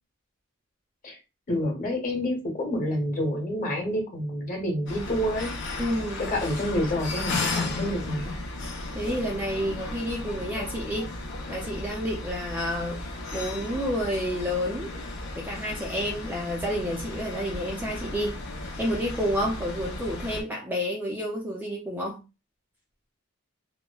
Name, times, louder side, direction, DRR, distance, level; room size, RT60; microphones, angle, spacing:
voice 1, 1.5-5.5 6.3-8.3, equal, 40° left, 0 dB, 1.0 m, -28 dB
sound 1, 4.9-20.4, left 2 dB, 55° left, 0.6 m, -35 dB
voice 2, 5.8-6.2 8.9-11.1 11.5-14.9 15.4-18.4 18.8-22.2, equal, 10° right, -2 dB, 0.4 m, -30 dB
2.9 x 2.1 x 2.2 m, 0.28 s
head